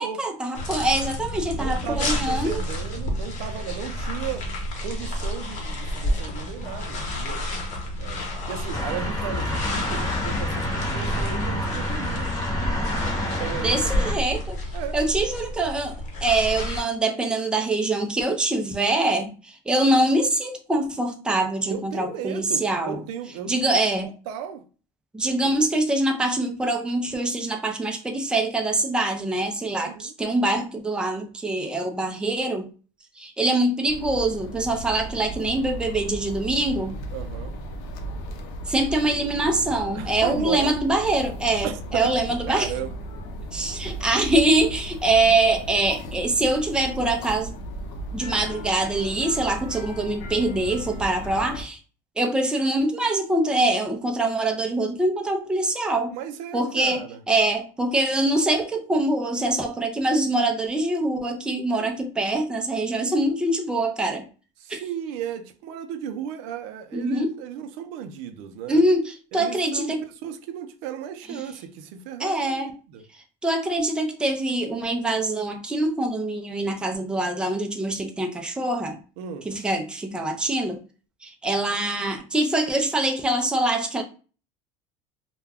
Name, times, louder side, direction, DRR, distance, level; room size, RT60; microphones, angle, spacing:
voice 1, 0.0-2.6 13.6-14.6 14.9-23.0 23.5-24.1 25.1-32.7 33.2-37.0 38.7-42.7 43.5-47.5 48.1-51.8 52.2-56.1 56.5-64.2 64.7-64.8 66.9-67.3 68.7-70.0 71.3-71.5 72.2-72.7 73.4-79.0 79.4-80.8 81.2-84.0, right 2 dB, 5° right, 0.4 m, -24 dB
sound 1, 0.5-16.8, left 1 dB, 50° left, 1.1 m, -30 dB
voice 2, 1.6-4.5 4.8-7.5 8.0-12.3 13.4-14.0 14.7-15.0 21.7-23.8 24.3-24.6 25.2-25.5 29.8-30.1 37.1-37.5 39.9-40.7 41.6-42.1 42.5-42.9 56.1-57.2 64.6-68.8 69.3-69.9 70.2-72.6 72.9-73.0 79.2-79.5, right 9 dB, 75° right, 0.5 m, -35 dB
sound 2, 8.7-14.2, left 1 dB, 25° left, 1.0 m, -29 dB
sound 3, 33.8-51.6, equal, 75° left, 0.6 m, -35 dB
2.2 x 2.2 x 3.4 m
supercardioid pair, 120°, 15 cm